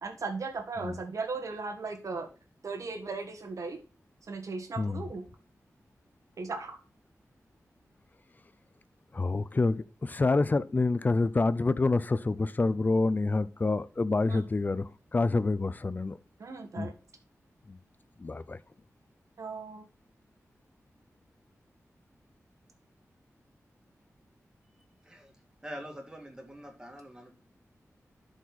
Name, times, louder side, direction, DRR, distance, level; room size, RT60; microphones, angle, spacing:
voice 1, 0.0-2.3 2.6-3.8 4.3-5.3 6.4-6.8 14.2-14.4 16.4-16.9 19.4-19.9, right 4 dB, 70° right, 1.5 m, -37 dB
voice 2, 9.1-16.2 16.8-16.9 17.7-17.8 18.2-18.6, left 3 dB, 30° left, 0.5 m, -27 dB
voice 3, 25.0-25.4 25.6-27.4, equal, 15° right, 2.1 m, -44 dB
11.5 x 5.1 x 4.1 m
wide cardioid pair, 130°, 6 cm